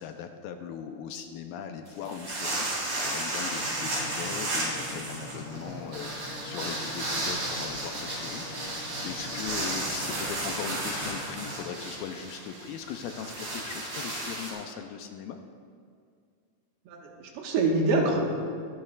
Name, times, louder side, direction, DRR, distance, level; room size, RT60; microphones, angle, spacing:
voice 1, 0.0-15.4, left 7 dB, 80° left, 5 dB, 2.2 m, -39 dB
sound 1, 1.9-14.5, right 1 dB, 45° right, 4.1 m, -33 dB
sound 2, 3.5-11.6, left 2 dB, 50° left, 1.2 m, -43 dB
voice 2, 16.9-18.2, right 3 dB, 90° right, 0 dB, 3.3 m, -25 dB
23.0 x 10.5 x 2.4 m, 2.2 s
omnidirectional pair, 4.4 m